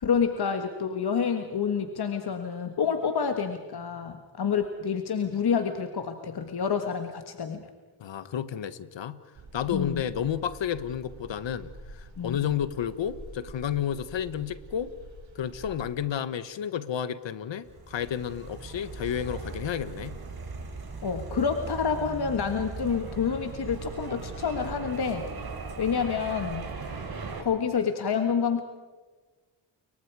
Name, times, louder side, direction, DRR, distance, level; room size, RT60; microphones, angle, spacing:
voice 1, 0.0-7.7 9.7-10.0 12.2-12.4 21.0-25.3 25.8-26.7 27.0-27.1 27.4-28.6, left 6 dB, 55° left, 6 dB, 1.7 m, -28 dB
voice 2, 8.0-9.2 9.5-14.9 15.3-20.2, left 9 dB, 70° left, 14 dB, 1.3 m, -31 dB
sound 1, 9.3-15.9, right 2 dB, 85° right, 5.2 m, -47 dB
sound 2, 17.6-27.4, right 4 dB, 50° right, 4.1 m, -38 dB
29.5 x 23.5 x 4.8 m, 1.4 s
cardioid pair, 60°, 46 cm